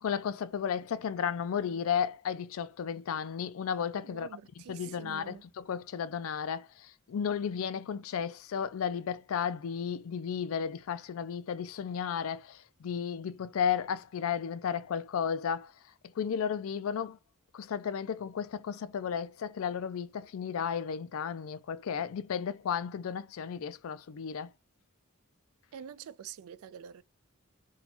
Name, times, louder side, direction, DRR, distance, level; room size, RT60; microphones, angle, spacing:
voice 1, 0.0-4.3 4.7-15.7 16.2-17.2 17.5-24.5, left 7 dB, 70° left, 0.4 m, -33 dB
voice 2, 4.0-5.5 25.7-27.0, right 8 dB, 75° right, 0.3 m, -46 dB
2.8 x 2.3 x 4.1 m
head